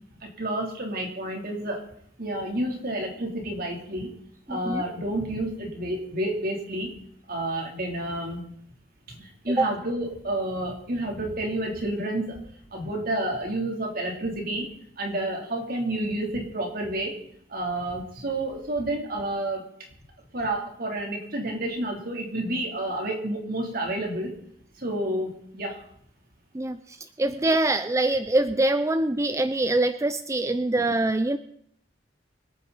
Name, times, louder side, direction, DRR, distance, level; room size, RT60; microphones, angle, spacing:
voice 1, 0.2-1.9 2.2-4.1 4.5-6.9 7.3-8.4 9.1-12.4 12.7-14.7 15.0-17.2 17.5-19.9 20.3-24.4 24.8-25.8, right 1 dB, 55° right, 1 dB, 3.3 m, -30 dB
voice 2, 4.5-4.8 9.6-9.7 26.5-31.4, right 2 dB, 15° right, 10 dB, 0.5 m, -24 dB
24.5 x 9.2 x 4.1 m, 0.66 s
head